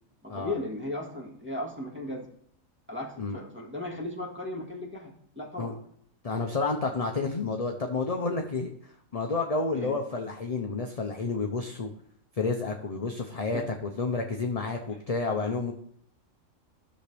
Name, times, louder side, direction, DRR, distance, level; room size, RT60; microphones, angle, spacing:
voice 1, 0.2-2.3 2.9-5.7 9.7-10.0 13.5-13.7, left 1 dB, 10° right, -2 dB, 1.9 m, -36 dB
voice 2, 6.2-8.7 9.1-11.9 12.4-15.7, left 3 dB, 35° left, 2 dB, 0.7 m, -30 dB
13.5 x 6.4 x 3.5 m, 0.65 s
omnidirectional pair, 1.4 m